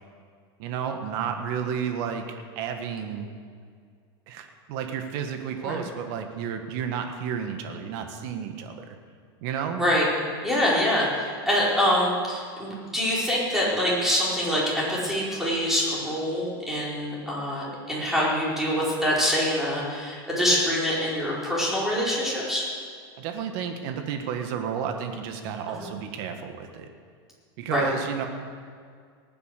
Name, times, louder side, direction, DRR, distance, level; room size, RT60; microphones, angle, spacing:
voice 1, 0.6-3.3 4.3-8.8 9.4-9.9 23.2-26.9 27.6-28.3, right 7 dB, 60° right, 5 dB, 1.7 m, -32 dB
voice 2, 10.4-22.7 25.7-25.9 27.7-27.9, equal, 5° right, -6 dB, 4.8 m, -25 dB
19.0 x 9.9 x 6.7 m, 2.1 s
supercardioid pair, 135°, 13 cm